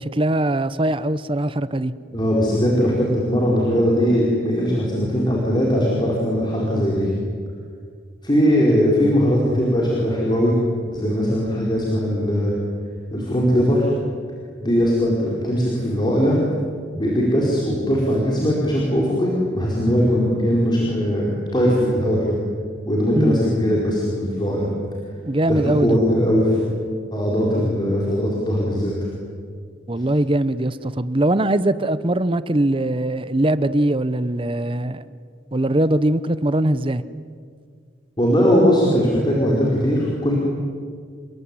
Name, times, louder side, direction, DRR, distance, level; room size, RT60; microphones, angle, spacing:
voice 1, 0.0-1.9 23.1-23.4 25.3-26.0 29.9-35.0 35.5-37.0, right 1 dB, 30° right, 15 dB, 0.9 m, -21 dB
voice 2, 2.1-7.1 8.2-10.5 10.9-12.5 13.1-13.9 14.6-16.4 16.9-22.4 22.8-24.7 25.5-26.6 27.1-28.9 38.2-40.4, equal, 25° left, -3 dB, 4.6 m, -20 dB
28.0 x 21.5 x 9.8 m, 2.1 s
head